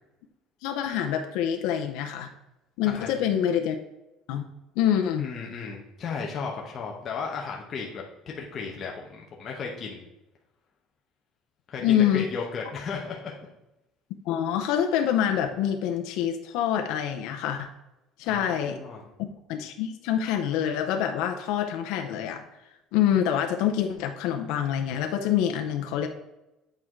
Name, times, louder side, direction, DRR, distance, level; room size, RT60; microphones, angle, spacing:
voice 1, 0.6-2.3 2.8-3.8 4.3-4.4 4.8-5.3 11.8-12.3 14.3-17.7 18.2-18.8 19.2-22.4 22.9-26.1, left 9 dB, 70° left, 4 dB, 0.7 m, -26 dB
voice 2, 2.9-3.2 5.2-10.1 11.7-13.3 18.2-19.1, left 5 dB, 30° left, -1 dB, 0.9 m, -35 dB
8.8 x 4.6 x 3.7 m, 0.94 s
cardioid pair, 175°, 0 cm